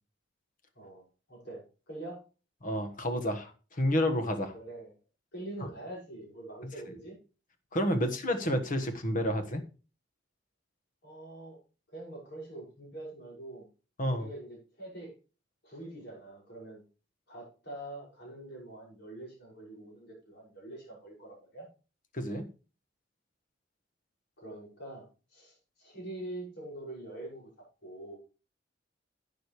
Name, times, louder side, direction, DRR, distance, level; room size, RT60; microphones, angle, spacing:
voice 1, 1.3-2.2 4.5-4.9 5.3-7.2 11.0-11.6 11.9-13.7 14.1-15.1 15.6-16.8 17.3-21.7 24.4-27.5 27.8-28.2, right 1 dB, 60° left, -2 dB, 6.0 m, -44 dB
voice 2, 2.6-4.5 7.7-9.6 14.0-14.3 22.1-22.5, equal, 45° left, 7 dB, 1.4 m, -30 dB
11.5 x 8.9 x 3.2 m, 0.33 s
head